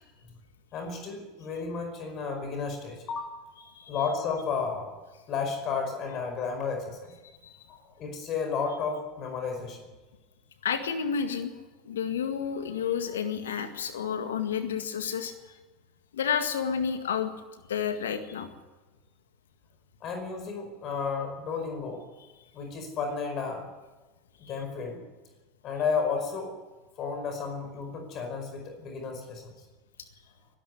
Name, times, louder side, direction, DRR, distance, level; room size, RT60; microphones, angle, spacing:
voice 1, 0.7-3.4 3.9-4.9 5.3-7.1 7.7-9.8 20.0-22.0 22.5-23.7 24.5-25.0 25.6-26.5 27.0-29.5, left 5 dB, 45° left, 5 dB, 5.1 m, -32 dB
voice 2, 10.6-11.5 11.9-15.6 16.1-17.3 17.7-18.5 24.4-24.5, left 7 dB, 80° left, 8 dB, 1.9 m, -30 dB
24.0 x 12.0 x 9.4 m, 1.2 s
hypercardioid pair, 80°, 0 cm